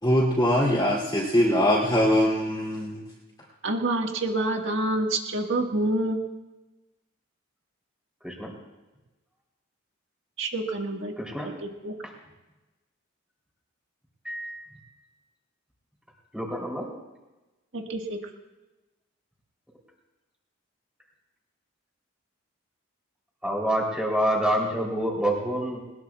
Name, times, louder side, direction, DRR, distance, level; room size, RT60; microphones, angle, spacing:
voice 1, 0.0-3.0, equal, 20° left, -6 dB, 2.9 m, -22 dB
voice 2, 3.6-6.2 10.4-11.1 11.6-11.9 17.7-18.2, right 2 dB, 60° right, 2 dB, 1.7 m, -27 dB
voice 3, 11.2-11.5 14.2-14.8 16.3-16.9 23.4-25.8, right 1 dB, 5° right, -2 dB, 3.4 m, -27 dB
21.0 x 20.0 x 2.4 m, 1.1 s
head